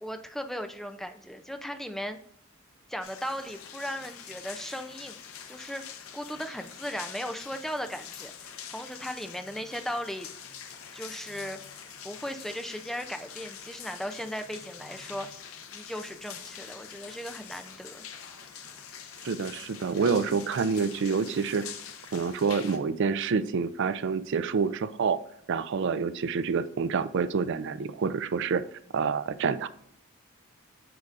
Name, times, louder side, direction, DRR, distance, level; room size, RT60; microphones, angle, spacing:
voice 1, 0.0-2.2 2.9-5.2 5.5-5.8 6.1-10.3 10.9-11.6 12.0-15.3 15.7-18.1, equal, ahead, 7 dB, 0.4 m, -37 dB
sound 1, 3.0-22.8, left 8 dB, 85° left, 0.8 m, -45 dB
voice 2, 19.2-21.6 22.1-25.2 25.5-28.6 28.9-29.7, right 5 dB, 60° right, 13 dB, 0.4 m, -27 dB
8.3 x 4.8 x 2.5 m, 0.67 s
head